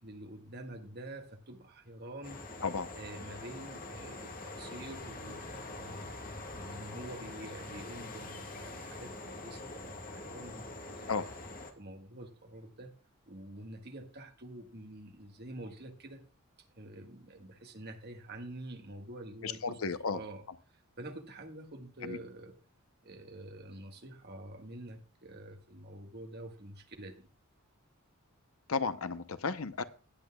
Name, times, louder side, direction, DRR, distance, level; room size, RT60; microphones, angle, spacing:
voice 1, 0.0-2.4 2.9-6.1 6.5-10.6 10.9-11.1 11.8-12.9 13.3-16.2 16.7-19.8 20.1-22.5 23.0-27.3, right 1 dB, 50° right, 1.7 m, -47 dB
sound 1, 2.2-11.7, left 2 dB, 40° left, 1.8 m, -44 dB
voice 2, 19.4-20.2 22.0-22.2 28.7-29.8, left 4 dB, 70° left, 0.8 m, -33 dB
17.5 x 8.3 x 2.3 m
head